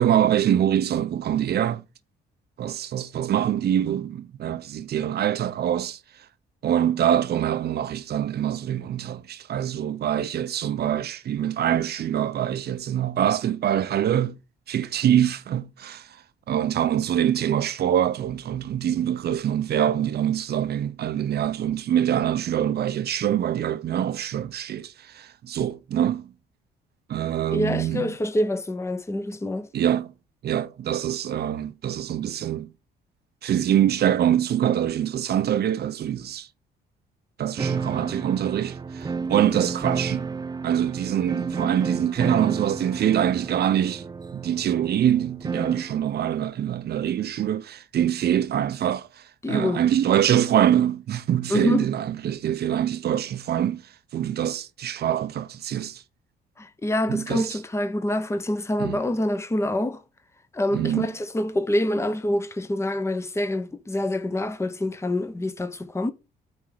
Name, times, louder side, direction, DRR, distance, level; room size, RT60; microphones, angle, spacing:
voice 1, 0.0-1.8 2.6-6.0 6.6-14.4 14.7-16.1 16.5-26.3 27.1-28.1 29.7-30.1 30.4-32.7 33.4-36.5 37.4-40.3 40.6-49.1 49.5-53.8 54.1-56.0 57.1-57.6 58.8-59.0 60.7-61.1, right 10 dB, 60° right, 0.7 m, -24 dB
voice 2, 27.5-29.7 49.4-49.8 51.5-51.9 56.6-60.0 60.5-66.1, left 1 dB, 15° left, 0.9 m, -26 dB
sound 1, 37.6-46.0, right 5 dB, 20° right, 0.5 m, -31 dB
8.6 x 3.6 x 4.7 m
cardioid pair, 85°, 19 cm